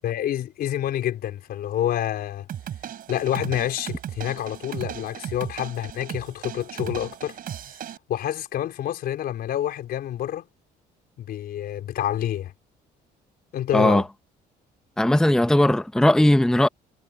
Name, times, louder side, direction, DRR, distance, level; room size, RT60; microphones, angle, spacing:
voice 1, 0.0-2.5 3.1-7.4 8.1-10.5 11.2-12.5 13.5-14.0, left 11 dB, 65° left, 4.5 m, -28 dB
sound 1, 2.5-8.0, right 10 dB, 60° right, 5.1 m, -36 dB
voice 2, 13.7-14.0 15.0-16.7, left 1 dB, 5° left, 0.9 m, -18 dB
cardioid pair, 110°, 17 cm